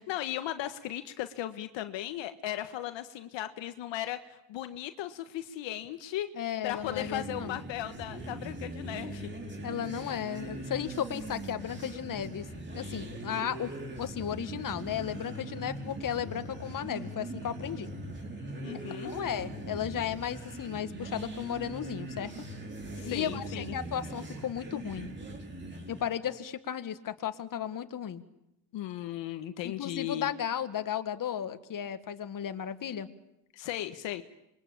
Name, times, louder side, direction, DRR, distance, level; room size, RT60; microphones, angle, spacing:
voice 1, 0.0-6.3 6.6-9.3 10.0-10.2 18.6-19.1 23.0-23.7 28.7-30.3 33.5-34.2, left 13 dB, 75° left, 9 dB, 1.5 m, -37 dB
voice 2, 6.3-7.6 9.6-12.5 12.7-13.7 14.0-17.9 19.0-22.3 23.0-25.2 25.9-28.2 29.8-33.1, left 9 dB, 45° left, 10 dB, 1.9 m, -35 dB
sound 1, 6.6-26.1, right 1 dB, 25° right, 5.2 m, -41 dB
26.5 x 22.5 x 8.9 m, 0.84 s
cardioid pair, 105°, 45 cm